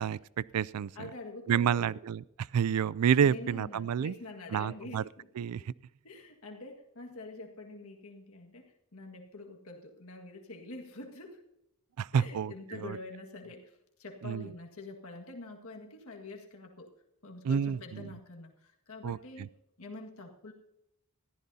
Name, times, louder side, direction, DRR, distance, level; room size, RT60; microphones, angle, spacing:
voice 1, 0.0-1.1 1.5-2.2 2.5-4.1 4.5-5.0 5.4-5.7 12.0-12.5 12.8-13.0 14.2-14.5 17.4-18.1 19.0-19.5, right 8 dB, 90° right, 22 dB, 0.4 m, -29 dB
voice 2, 1.0-2.0 3.2-5.5 6.0-11.4 12.1-16.9 17.2-19.5 19.8-20.5, left 2 dB, 70° left, 1 dB, 1.8 m, -46 dB
20.5 x 14.0 x 2.8 m, 0.80 s
head